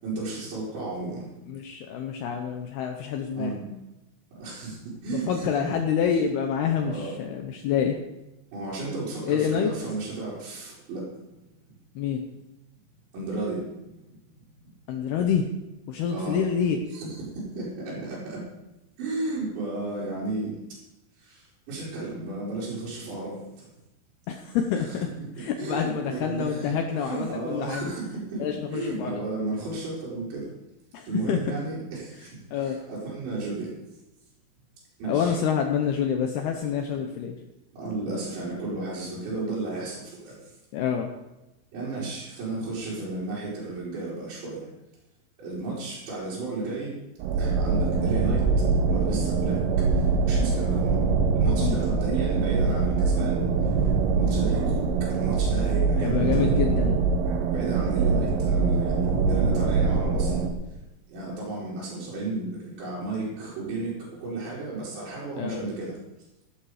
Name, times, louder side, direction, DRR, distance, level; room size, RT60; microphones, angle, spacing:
voice 1, 0.0-1.2 3.3-3.7 4.4-5.7 6.8-7.1 8.5-11.0 13.1-13.7 16.1-16.4 16.9-18.4 19.0-20.5 21.2-23.6 24.9-25.3 25.6-30.5 31.1-33.7 35.0-35.3 37.0-37.1 37.7-40.5 41.7-44.7 45.4-46.9 47.4-48.5 48.9-51.1 51.3-53.8 54.2-56.6 57.5-60.7 61.1-65.9, right 3 dB, 65° right, -10 dB, 6.7 m, -33 dB
voice 2, 1.5-3.6 5.1-8.0 9.3-9.7 12.0-12.2 14.9-15.5 15.9-16.8 24.3-25.1 25.4-27.9 28.4-29.2 30.9-31.4 32.5-32.8 35.1-37.3 40.7-41.1 51.4-51.8 56.0-57.0 65.4-65.6, left 8 dB, 75° left, 4 dB, 2.4 m, -27 dB
sound 1, 47.2-60.5, right 4 dB, 85° right, 4.0 m, -23 dB
16.0 x 12.5 x 5.0 m, 0.96 s
omnidirectional pair, 5.6 m